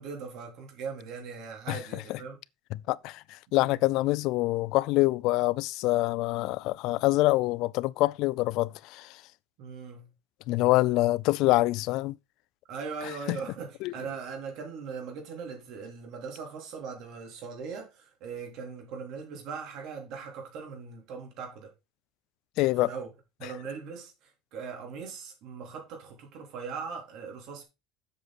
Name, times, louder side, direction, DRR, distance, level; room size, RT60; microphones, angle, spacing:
voice 1, 0.0-2.4 3.6-3.8 9.6-10.1 12.7-21.7 22.7-23.1 23.4-27.6, right 5 dB, 50° right, 3.4 m, -40 dB
voice 2, 2.9-9.2 10.5-12.2 13.3-13.4 13.8-13.9 22.6-22.9, left 19 dB, 55° left, 0.3 m, -25 dB
7.9 x 6.4 x 4.1 m
cardioid pair, 170°, 0 cm